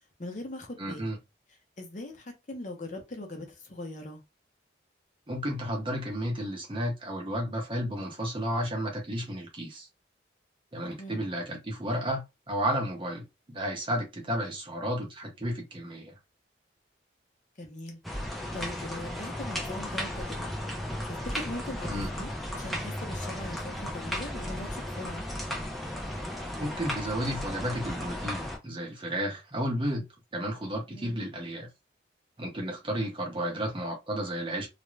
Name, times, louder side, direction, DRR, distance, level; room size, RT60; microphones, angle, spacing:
voice 1, 0.2-1.1 1.8-4.2 11.0-11.3 17.6-18.0 18.5-20.5 21.1-25.2 30.9-31.3, left 1 dB, 40° left, 0.7 m, -40 dB
voice 2, 0.8-1.2 5.3-9.9 10.7-12.2 12.5-16.1 21.9-22.1 26.6-30.1 30.3-31.7 32.4-34.7, equal, 30° right, 0.8 m, -32 dB
sound 1, 18.0-28.6, equal, ahead, 0.5 m, -35 dB
2.4 x 2.1 x 3.1 m
head